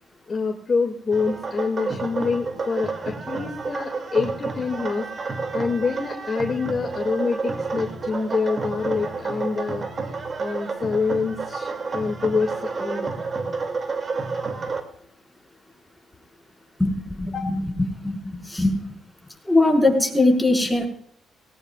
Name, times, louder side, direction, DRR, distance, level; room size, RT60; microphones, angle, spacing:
voice 1, 0.3-5.1 5.5-9.8 10.4-12.5 12.8-13.1 17.3-17.5, left 4 dB, 40° left, 3 dB, 2.4 m, -26 dB
sound 1, 1.1-14.8, right 4 dB, 40° right, 2.6 m, -30 dB
voice 2, 18.5-18.8 19.5-20.9, left 2 dB, 5° left, 0 dB, 5.4 m, -19 dB
20.0 x 18.0 x 2.5 m, 0.64 s
cardioid pair, 90°, 0 cm